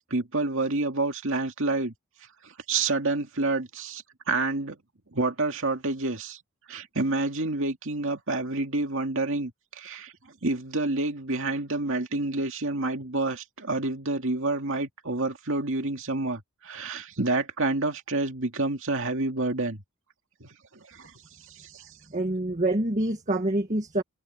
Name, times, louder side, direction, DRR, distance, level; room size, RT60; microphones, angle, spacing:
voice 1, 0.0-1.9 2.4-4.8 5.1-6.4 6.7-19.8 20.4-21.1 21.5-21.9, right 2 dB, 60° right, 2.4 m, -28 dB
voice 2, 22.1-24.0, right 1 dB, 35° right, 1.7 m, -26 dB
head